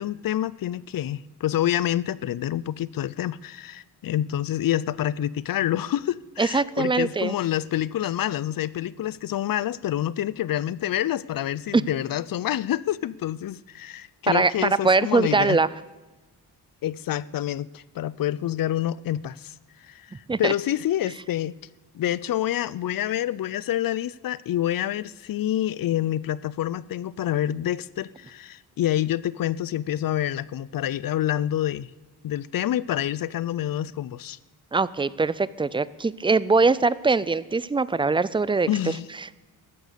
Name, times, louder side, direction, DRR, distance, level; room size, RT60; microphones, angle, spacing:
voice 1, 0.0-15.6 16.8-19.5 19.8-21.5 21.9-31.9 32.2-34.4 38.7-39.1, left 12 dB, 55° left, 0.5 m, -27 dB
voice 2, 6.4-7.3 11.7-11.8 14.3-15.7 20.3-20.5 34.7-38.9 39.2-39.3, right 3 dB, 15° right, 0.4 m, -22 dB
15.0 x 11.5 x 6.8 m
cardioid pair, 105°, 41 cm